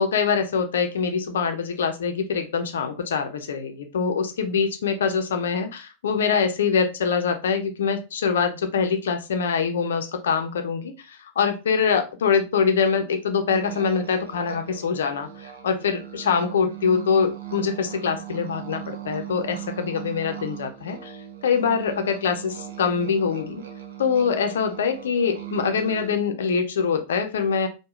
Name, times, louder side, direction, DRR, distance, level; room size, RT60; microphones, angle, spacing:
voice 1, 0.0-23.6 24.0-27.7, left 6 dB, 65° left, 6 dB, 0.7 m, -24 dB
sound 1, 13.5-26.1, right 11 dB, 65° right, 1.0 m, -38 dB
4.7 x 2.3 x 3.6 m, 0.28 s
figure-of-eight pair, 90°, 0 cm